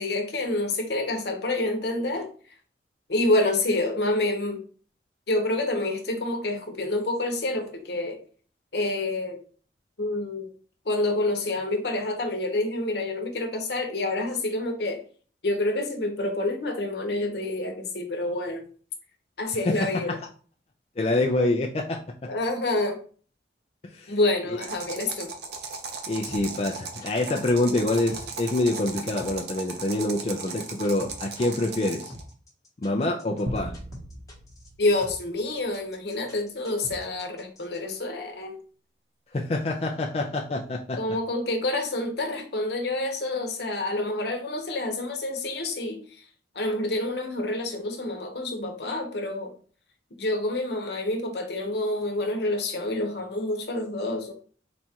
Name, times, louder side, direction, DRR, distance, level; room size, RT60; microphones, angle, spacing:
voice 1, 0.0-2.3 3.1-4.6 5.3-8.2 8.7-9.4 10.0-10.5 10.9-15.0 15.4-18.6 19.4-20.2 22.3-23.0 24.1-25.3 34.8-38.6 41.0-46.0 46.5-49.5 50.2-54.3, left 2 dB, 65° left, 4 dB, 0.9 m, -28 dB
voice 2, 19.5-20.2 21.0-22.3 23.8-24.2 24.5-24.6 26.1-32.1 32.8-33.7 39.3-41.0, left 2 dB, 35° left, 0 dB, 0.4 m, -26 dB
sound 1, 24.6-32.2, right 4 dB, 65° right, 0.7 m, -37 dB
sound 2, 26.3-37.8, left 1 dB, 20° left, 1.0 m, -46 dB
sound 3, 33.5-36.3, equal, 30° right, 0.6 m, -39 dB
4.1 x 2.4 x 4.3 m, 0.42 s
head